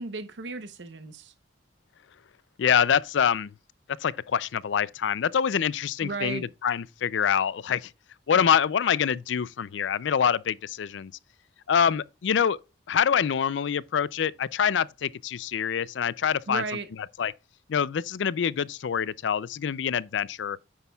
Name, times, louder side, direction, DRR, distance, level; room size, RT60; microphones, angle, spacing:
voice 1, 0.0-1.3 6.0-6.5 16.5-16.9, right 3 dB, 70° right, 0.8 m, -34 dB
voice 2, 2.6-3.5 4.0-7.9 8.3-11.1 11.7-12.6 12.9-16.6 17.2-17.3 17.7-20.6, left 7 dB, 75° left, 0.4 m, -25 dB
9.6 x 8.1 x 2.3 m
head